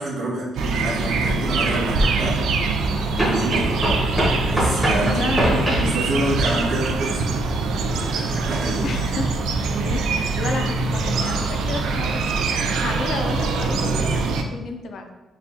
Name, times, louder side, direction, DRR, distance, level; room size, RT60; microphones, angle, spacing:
voice 1, 0.0-2.5 3.2-3.8 4.5-5.2 5.5-7.2 8.1-8.8, right 1 dB, 45° right, -8 dB, 1.4 m, -27 dB
sound 1, 0.6-14.4, right 3 dB, 80° right, 0.4 m, -23 dB
sound 2, 3.2-6.0, equal, ahead, 1.0 m, -23 dB
voice 2, 5.0-5.7 8.8-9.4 9.9-15.1, left 3 dB, 50° left, 5 dB, 0.4 m, -31 dB
6.6 x 2.3 x 2.8 m, 1.1 s
cardioid pair, 175°, 0 cm